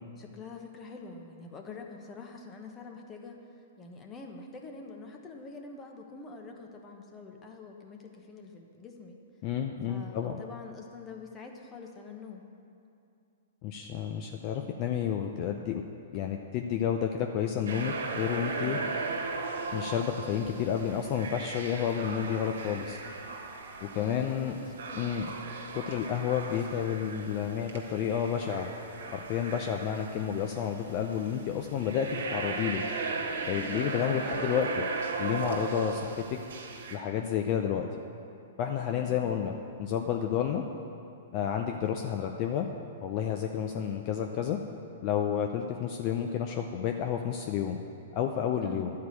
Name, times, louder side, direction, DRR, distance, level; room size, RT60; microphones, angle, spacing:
voice 1, 0.2-9.2 9.8-12.4 18.6-18.9 23.9-25.0 33.5-34.4 38.9-39.4 48.6-48.9, left 4 dB, 20° left, 2 dB, 1.1 m, -46 dB
voice 2, 9.4-10.4 13.6-15.8 16.1-18.8 19.7-23.0 23.8-24.6 24.9-25.3 25.7-28.7 29.1-32.8 33.5-34.8 35.2-36.4 36.9-37.9 38.6-40.6 41.3-42.7 43.0-44.6 45.0-47.8 48.1-48.9, left 8 dB, 40° left, 3 dB, 0.6 m, -30 dB
sound 1, 17.7-37.0, right 4 dB, 80° right, 1.4 m, -37 dB
11.5 x 4.7 x 8.3 m, 2.6 s
hypercardioid pair, 140°, 0 cm